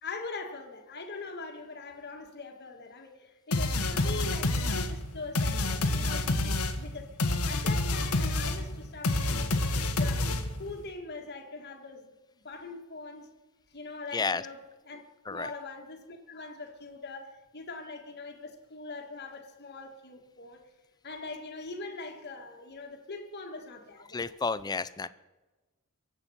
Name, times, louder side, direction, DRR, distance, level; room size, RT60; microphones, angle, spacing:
voice 1, 0.0-7.2 7.5-9.5 10.0-12.1 12.4-13.4 13.7-15.0 15.3-20.6 21.0-24.3, left 3 dB, 50° left, 4 dB, 1.9 m, -42 dB
sound 1, 3.5-10.7, left 2 dB, 85° left, 1.5 m, -28 dB
voice 2, 14.1-14.4 15.3-15.5 24.1-25.1, left 4 dB, 20° left, 15 dB, 0.4 m, -31 dB
23.0 x 8.1 x 5.7 m, 1.2 s
head